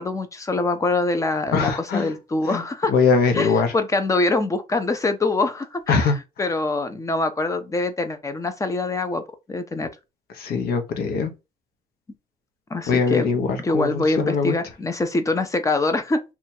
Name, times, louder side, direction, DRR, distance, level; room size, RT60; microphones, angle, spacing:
voice 1, 0.0-2.9 3.3-9.2 9.5-9.9 12.7-13.3 13.6-16.2, left 3 dB, 20° left, 0.6 m, -24 dB
voice 2, 1.5-2.1 2.5-2.6 2.9-3.7 5.9-6.1 10.4-11.3 12.9-14.6, left 5 dB, 65° left, 0.9 m, -21 dB
2.8 x 2.4 x 4.2 m
cardioid pair, 110°, 17 cm